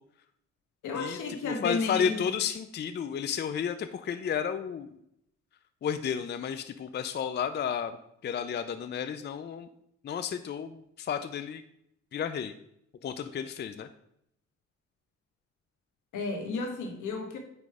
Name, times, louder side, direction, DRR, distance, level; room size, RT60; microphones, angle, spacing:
voice 1, 0.8-2.2 16.1-17.4, left 4 dB, 80° left, 3 dB, 1.6 m, -33 dB
voice 2, 1.4-5.0 5.8-8.0 8.2-9.7 10.0-11.6 12.1-12.5 13.0-13.9, left 7 dB, 35° left, 10 dB, 0.5 m, -32 dB
9.3 x 3.3 x 4.8 m, 0.75 s
cardioid pair, 90°, 30 cm